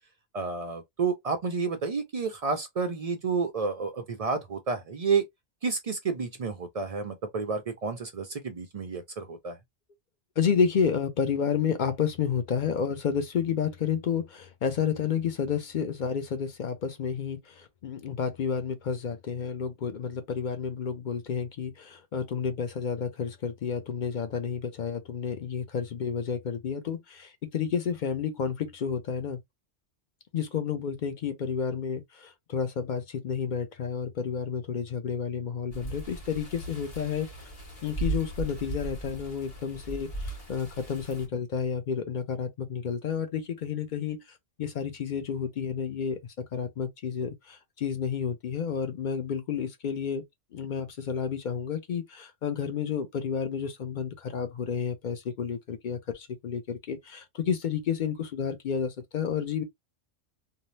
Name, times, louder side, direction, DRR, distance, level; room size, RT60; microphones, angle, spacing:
voice 1, 0.3-5.2 5.6-9.6, right 5 dB, 60° right, 0.3 m, -30 dB
voice 2, 10.4-29.4 30.3-37.3 37.8-44.2 44.6-46.2 46.5-50.2 50.5-59.6, left 7 dB, 55° left, 0.6 m, -30 dB
sound 1, 35.7-41.3, right 3 dB, 35° left, 1.1 m, -37 dB
2.7 x 2.0 x 3.0 m
omnidirectional pair, 1.2 m